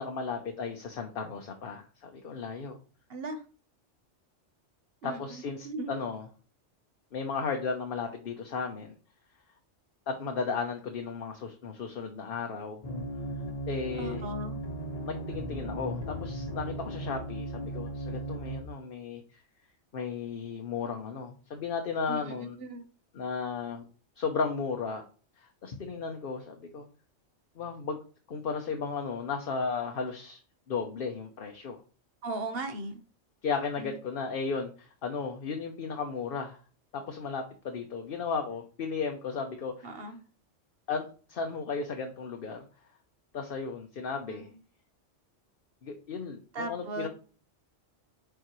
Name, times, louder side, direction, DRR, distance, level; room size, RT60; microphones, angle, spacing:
voice 1, 0.0-2.8 5.0-6.3 7.1-9.0 10.1-12.8 13.7-14.3 15.1-19.4 19.9-22.6 23.1-23.8 24.2-25.0 25.4-26.9 27.6-28.0 28.3-30.4 30.7-31.8 33.4-36.6 36.9-40.0 40.9-42.6 43.3-44.5 45.8-47.1, left 5 dB, 55° left, 3 dB, 0.9 m, -35 dB
voice 2, 3.1-3.4 5.0-6.0 14.0-14.6 22.1-22.9 32.2-33.0 33.8-33.9 39.8-40.2 44.3-44.6 46.5-47.1, right 2 dB, 55° right, 7 dB, 1.2 m, -38 dB
sound 1, 12.8-18.6, right 1 dB, 35° left, 1.2 m, -36 dB
6.7 x 4.5 x 3.1 m, 0.39 s
omnidirectional pair, 1.2 m